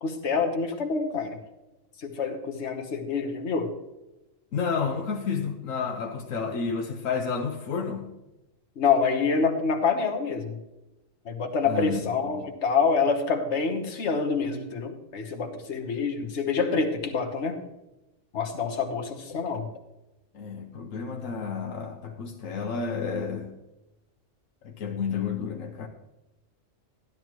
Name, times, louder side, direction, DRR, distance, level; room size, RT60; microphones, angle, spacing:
voice 1, 0.0-1.4 2.0-3.7 8.8-10.6 11.2-17.6 18.3-19.6, left 5 dB, 60° left, 4 dB, 1.5 m, -26 dB
voice 2, 4.5-8.1 11.6-12.4 16.2-16.3 20.3-23.5 24.6-25.9, left 5 dB, 80° left, 4 dB, 1.3 m, -31 dB
12.5 x 12.0 x 3.0 m, 0.97 s
omnidirectional pair, 1.4 m